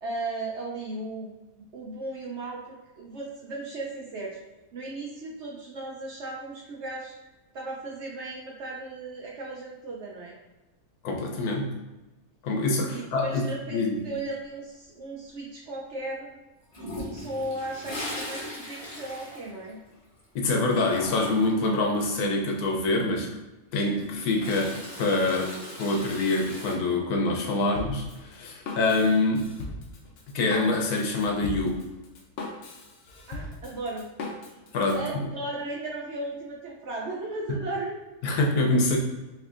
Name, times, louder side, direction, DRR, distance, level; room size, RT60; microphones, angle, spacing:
voice 1, 0.0-1.4 1.7-4.4 4.7-7.1 7.5-10.4 12.9-16.4 16.8-19.8 33.3-34.1 34.9-38.0, right 2 dB, 60° right, -2 dB, 0.7 m, -36 dB
voice 2, 11.0-11.7 12.4-13.4 13.7-14.0 20.3-23.3 23.7-25.5 25.8-29.5 30.3-31.8 34.7-35.0 38.2-39.0, left 2 dB, 80° left, 0 dB, 1.2 m, -25 dB
Toilet flush, 16.7-20.2 20.5-21.6 23.7-26.7, left 1 dB, 30° left, 0.9 m, -39 dB
Drum kit, 27.8-35.1, left 2 dB, 60° left, 0.9 m, -39 dB
4.4 x 2.7 x 2.4 m, 1.1 s
omnidirectional pair, 1.6 m